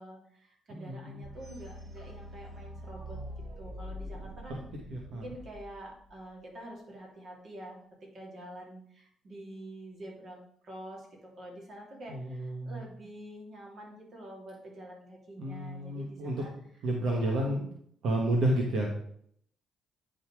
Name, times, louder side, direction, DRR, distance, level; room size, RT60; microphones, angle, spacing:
voice 1, 0.0-3.2 3.6-4.6 5.1-7.8 8.1-10.4 10.6-16.5 17.2-17.6, right 1 dB, 55° right, -2 dB, 3.0 m, -47 dB
voice 2, 0.7-1.2 4.5-4.6 4.9-5.3 12.1-12.8 15.4-16.4 16.8-17.7 18.0-19.0, right 1 dB, 75° right, 0 dB, 1.3 m, -31 dB
sound 1, 1.2-6.1, equal, 25° right, 3.6 m, -44 dB
9.9 x 4.0 x 4.7 m, 0.65 s
cardioid pair, 90°, 0 cm